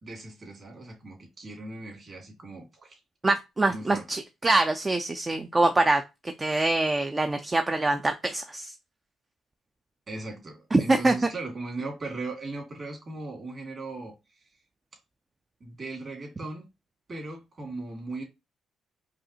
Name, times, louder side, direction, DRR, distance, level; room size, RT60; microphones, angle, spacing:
voice 1, 0.0-3.0 3.7-4.1 10.1-14.1 15.6-16.7 17.1-18.2, right 2 dB, 40° right, 2.3 m, -38 dB
voice 2, 3.2-8.7 10.7-11.1, right 2 dB, 20° right, 0.4 m, -24 dB
5.0 x 2.4 x 2.8 m
cardioid pair, 90°, 0 cm